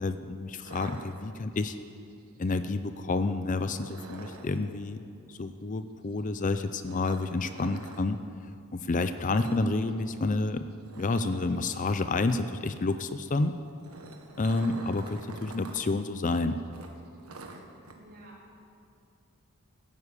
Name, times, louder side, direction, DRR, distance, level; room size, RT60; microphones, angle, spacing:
voice 1, 0.0-1.8 2.4-5.0 5.3-8.2 8.7-10.7 11.0-13.5 14.4-16.6, left 3 dB, 35° left, 10 dB, 0.5 m, -29 dB
sound 1, 0.6-1.6 3.7-4.6 6.8-8.0 9.3-9.6 9.9-10.1 10.4-10.5 10.9-12.0 13.6-15.8 16.1-16.2 16.7-17.9, right 2 dB, 85° right, 1.5 m, -46 dB
voice 2, 17.9-18.5, right 1 dB, 45° right, -5 dB, 4.2 m, -51 dB
16.0 x 9.5 x 8.3 m, 2.5 s
head